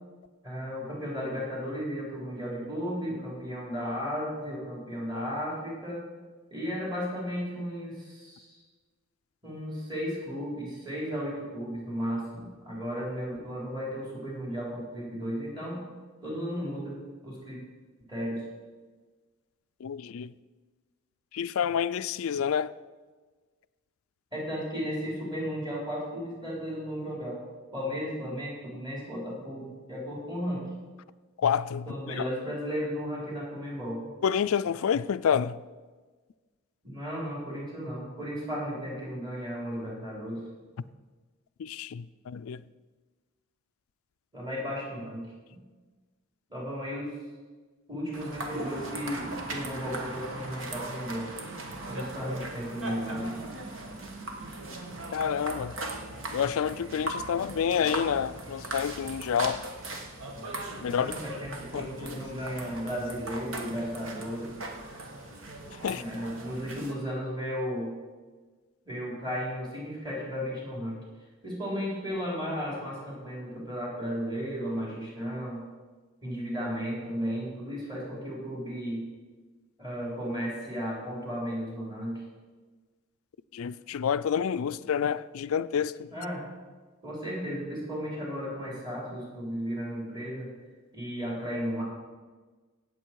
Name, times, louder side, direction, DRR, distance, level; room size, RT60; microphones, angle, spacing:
voice 1, 0.4-6.0 6.5-8.6 9.4-15.8 16.2-17.6 18.1-18.5 24.3-27.4 27.7-30.6 31.9-34.0 36.8-40.4 44.3-45.3 46.5-47.1 47.9-51.3 51.9-53.3 60.8-64.5 65.8-67.9 68.8-71.0 71.4-75.6 76.2-79.0 79.8-82.2 86.1-86.4 87.0-90.5 90.9-91.8, equal, 20° right, 4.1 m, -34 dB
voice 2, 19.8-20.3 21.3-22.7 31.4-32.2 34.2-35.6 41.6-42.6 55.1-55.8 56.3-59.6 60.8-61.1 61.7-62.2 65.8-66.0 83.5-86.1, left 7 dB, 70° left, 0.4 m, -28 dB
sound 1, 48.1-66.9, right 2 dB, 60° right, 1.5 m, -39 dB
17.5 x 7.6 x 4.7 m
head